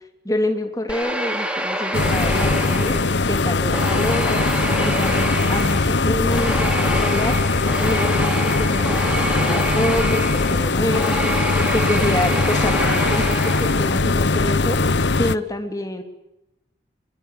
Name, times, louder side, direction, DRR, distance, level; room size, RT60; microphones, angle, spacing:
voice 1, 0.2-4.5 4.8-7.4 7.8-11.3 11.7-14.8 15.2-16.0, left 1 dB, 20° left, 6 dB, 3.4 m, -26 dB
sound 1, 0.9-3.3 3.7-14.0, right 1 dB, 5° right, 3.7 m, -27 dB
sound 2, 1.9-15.4, left 3 dB, 75° left, 1.1 m, -20 dB
28.0 x 23.5 x 8.7 m, 0.89 s
head